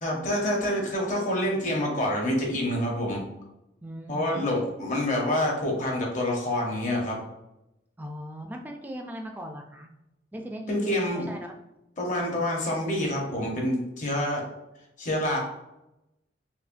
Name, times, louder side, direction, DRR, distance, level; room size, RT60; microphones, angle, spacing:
voice 1, 0.0-3.2 4.1-7.2 10.7-11.3 12.0-14.4 15.0-15.4, left 1 dB, 45° left, -1 dB, 0.9 m, -27 dB
voice 2, 3.8-4.6 8.0-9.9 10.3-11.5, equal, 10° right, 2 dB, 0.4 m, -38 dB
5.5 x 2.1 x 2.6 m, 0.91 s
head